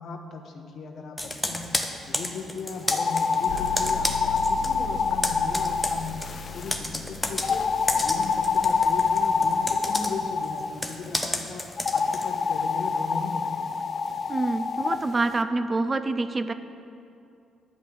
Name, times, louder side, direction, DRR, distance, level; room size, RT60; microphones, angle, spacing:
voice 1, 0.0-1.8 2.1-6.2 6.5-7.7 8.0-13.7, left 4 dB, 60° left, 4 dB, 1.1 m, -37 dB
Computer keyboard, 1.2-4.8 5.0-12.3, left 1 dB, 10° left, 1.0 m, -31 dB
sound 1, 2.8-6.7 7.4-10.7 11.8-15.0, left 5 dB, 45° left, 0.5 m, -26 dB
sound 2, 3.5-10.4, left 4 dB, 80° left, 2.0 m, -39 dB
voice 2, 14.3-16.5, right 3 dB, 30° right, 11 dB, 0.5 m, -26 dB
11.5 x 5.0 x 8.4 m, 2.6 s
cardioid pair, 90°, 0 cm